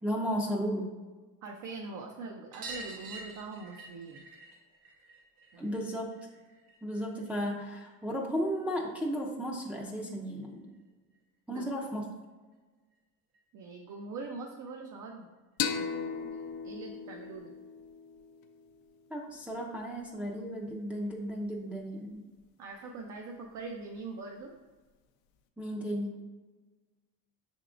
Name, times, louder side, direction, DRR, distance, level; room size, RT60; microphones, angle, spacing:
voice 1, 0.0-0.9 5.6-6.1 6.8-10.6 11.5-12.0 19.1-22.2 25.6-26.2, equal, 5° right, -3 dB, 0.5 m, -34 dB
voice 2, 1.4-4.2 5.5-5.7 11.5-11.8 13.5-15.3 15.7-16.4 16.6-17.5 22.6-24.5, right 3 dB, 60° right, 1 dB, 0.6 m, -43 dB
sound 1, 2.5-7.6 7.9-9.1 10.4-10.5 10.7-10.8 11.1-11.2 12.5-12.6 12.9-13.0 13.3-13.4 14.7-14.8 15.5-15.6, right 3 dB, 85° right, 1.1 m, -48 dB
sound 2, 15.6-19.0, left 7 dB, 80° left, 0.5 m, -37 dB
5.6 x 3.6 x 2.5 m, 1.3 s
cardioid pair, 115°, 35 cm